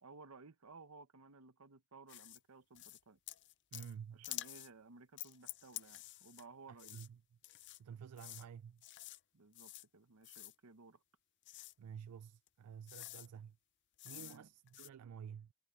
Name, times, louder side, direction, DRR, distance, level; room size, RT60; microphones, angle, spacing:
voice 1, 0.0-3.2 4.1-7.0 9.3-11.0 14.1-14.5, right 3 dB, 70° right, 1.0 m, -58 dB
sound 1, 2.1-2.4 2.8-3.0 3.3-3.9 4.2-4.7 5.2-6.5 6.8-7.1 7.4-7.8 8.2-8.5 8.8-9.2 9.5-9.9 10.2-10.6 11.4-11.7 12.5-12.6 12.9-13.3 14.0-14.4 14.7-14.9, left 16 dB, 55° left, 0.6 m, -49 dB
voice 2, 3.7-4.3 6.7-7.2 7.8-8.8 11.8-13.6 14.0-15.5, right 7 dB, 90° right, 0.4 m, -51 dB
head